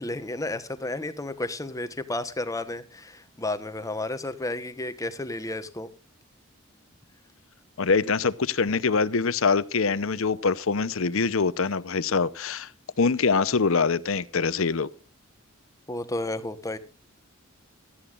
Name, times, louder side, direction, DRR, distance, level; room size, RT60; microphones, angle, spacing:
voice 1, 0.0-5.9 15.9-16.8, left 2 dB, 15° left, 1.0 m, -32 dB
voice 2, 7.8-12.7 13.0-14.9, left 4 dB, 70° left, 0.7 m, -24 dB
17.0 x 13.0 x 2.4 m
head